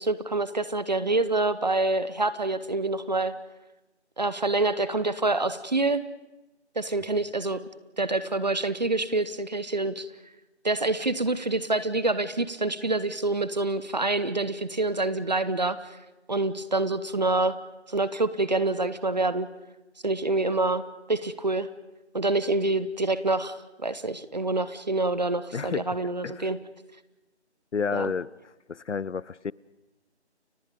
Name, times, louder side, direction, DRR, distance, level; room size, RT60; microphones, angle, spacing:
voice 1, 0.0-3.3 4.2-6.0 6.8-7.6 8.0-10.1 10.6-16.0 16.3-17.6 17.9-19.5 20.0-20.8 21.1-21.7 22.1-26.6 27.9-28.1, right 2 dB, 40° right, 1.0 m, -26 dB
voice 2, 25.5-25.9 26.2-26.5 27.7-28.3 28.7-29.5, left 5 dB, 90° left, 0.7 m, -30 dB
30.0 x 23.5 x 5.3 m
figure-of-eight pair, 170°, 34 cm